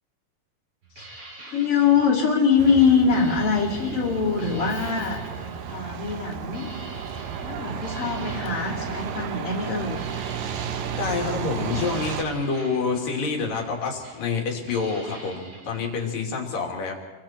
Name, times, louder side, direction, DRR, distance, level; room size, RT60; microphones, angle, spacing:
sound 1, 0.8-16.1, right 2 dB, 40° right, 7.1 m, -45 dB
voice 1, 1.5-5.2 5.7-6.7 7.4-10.0, left 6 dB, 40° left, -6 dB, 3.6 m, -23 dB
Truck, 2.6-12.2, right 7 dB, 75° right, 2.9 m, -33 dB
voice 2, 11.0-16.9, left 4 dB, 70° left, 1 dB, 4.4 m, -27 dB
29.5 x 23.5 x 4.5 m, 1.3 s
omnidirectional pair, 4.0 m